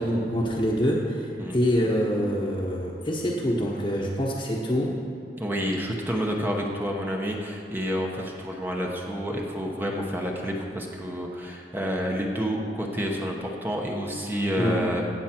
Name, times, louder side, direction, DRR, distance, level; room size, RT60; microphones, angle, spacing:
voice 1, 0.0-5.0 14.6-14.8, equal, 30° left, -5 dB, 1.1 m, -25 dB
voice 2, 5.4-15.0, equal, 10° right, 0 dB, 1.0 m, -29 dB
16.5 x 7.2 x 4.4 m, 2.7 s
head